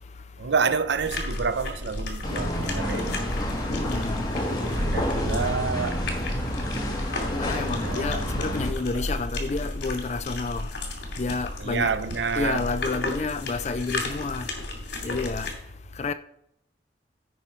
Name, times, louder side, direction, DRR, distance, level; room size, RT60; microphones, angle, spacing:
voice 1, 0.4-3.2 4.7-6.0 7.8-8.5 8.9-9.0 11.6-12.7, right 5 dB, 75° right, 0.5 m, -28 dB
sound 1, 0.9-15.5, left 1 dB, 65° left, 2.7 m, -33 dB
sound 2, 2.2-8.7, left 1 dB, 20° left, 1.8 m, -29 dB
voice 2, 3.9-4.2 7.4-10.7 11.2-11.9 12.4-14.5 15.0-15.5 16.0-16.1, left 4 dB, 40° left, 0.4 m, -29 dB
15.5 x 5.5 x 4.4 m
head